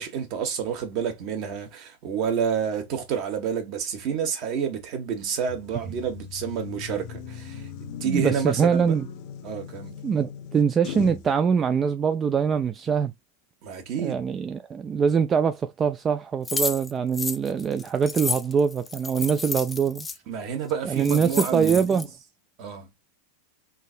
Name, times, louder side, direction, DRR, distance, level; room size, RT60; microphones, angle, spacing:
voice 1, 0.0-7.6 8.0-8.9 9.4-10.0 13.6-14.2 20.3-22.0 22.6-22.9, right 7 dB, 50° right, 1.3 m, -29 dB
sound 1, 5.5-11.3, left 8 dB, 55° left, 0.7 m, -39 dB
voice 2, 8.0-9.1 10.0-13.1 14.0-20.1 20.8-22.1, right 6 dB, 25° right, 0.3 m, -23 dB
sound 2, 16.5-20.2 20.7-20.8 21.0-22.0, left 4 dB, 15° left, 0.6 m, -31 dB
3.7 x 2.7 x 2.4 m
hypercardioid pair, 120°, 0 cm